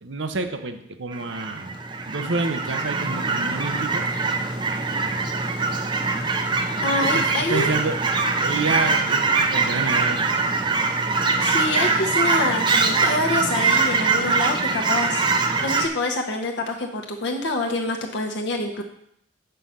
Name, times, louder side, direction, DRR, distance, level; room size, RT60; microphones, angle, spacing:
voice 1, 0.0-1.8 2.0-4.1 7.0-10.2, right 3 dB, 75° right, 8 dB, 0.8 m, -28 dB
Fowl / Chirp tweet, 1.1-15.9, right 4 dB, 25° right, 0.5 m, -23 dB
voice 2, 6.8-7.7 11.4-18.8, left 2 dB, 65° left, 1 dB, 0.9 m, -26 dB
7.7 x 5.5 x 5.6 m, 0.73 s
head